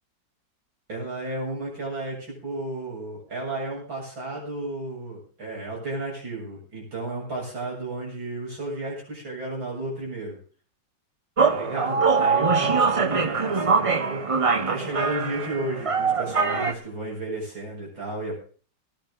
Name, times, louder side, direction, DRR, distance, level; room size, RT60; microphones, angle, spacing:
voice 1, 0.9-10.4 11.4-14.2 14.5-18.3, right 2 dB, 85° right, -2 dB, 8.1 m, -33 dB
sound 1, 11.4-16.7, right 5 dB, 50° right, 0.4 m, -23 dB
19.5 x 10.5 x 3.8 m, 0.42 s
omnidirectional pair, 2.1 m